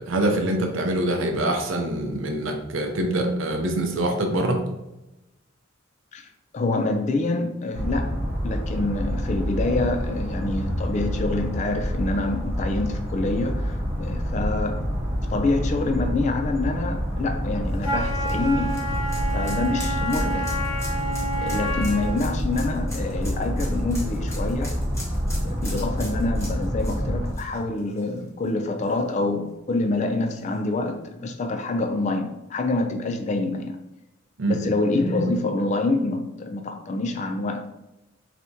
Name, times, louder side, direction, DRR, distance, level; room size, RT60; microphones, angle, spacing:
voice 1, 0.0-4.6 34.4-34.6, right 1 dB, 70° right, 2 dB, 0.6 m, -24 dB
voice 2, 6.5-8.2 8.4-14.9 15.3-18.8 19.3-20.5 21.4-24.8 25.4-33.8 34.5-37.7, left 2 dB, 35° left, 6 dB, 0.3 m, -26 dB
sound 1, 7.7-27.3, equal, 30° right, 0.9 m, -27 dB
sound 2, 17.7-28.5 28.8-28.9 30.4-30.5, left 1 dB, 15° left, 1.0 m, -41 dB
Wind instrument woodwind instrument, 17.8-22.3, right 1 dB, 80° left, 0.7 m, -29 dB
4.1 x 3.4 x 2.7 m, 0.95 s
head